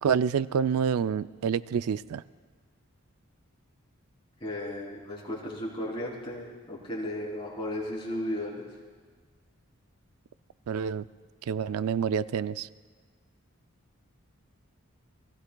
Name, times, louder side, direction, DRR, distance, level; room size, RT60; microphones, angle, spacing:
voice 1, 0.0-2.2 10.7-11.1 11.5-12.7, right 7 dB, 85° right, 15 dB, 0.4 m, -27 dB
voice 2, 4.4-8.7, left 1 dB, 25° left, -4 dB, 3.3 m, -35 dB
29.0 x 19.5 x 2.3 m, 1.5 s
head